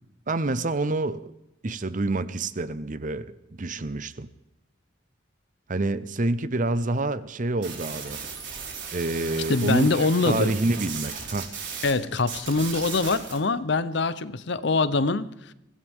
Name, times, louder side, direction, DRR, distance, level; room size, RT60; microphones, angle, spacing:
voice 1, 0.3-1.3 1.6-4.3 5.7-8.2 8.9-9.9 10.2-11.5, right 2 dB, 40° right, 0.7 m, -27 dB
sound 1, 7.6-11.9 12.2-13.4, right 6 dB, 60° right, 4.4 m, -36 dB
voice 2, 9.5-10.5 11.8-15.5, left 3 dB, 60° left, 0.7 m, -24 dB
23.5 x 16.5 x 3.6 m
head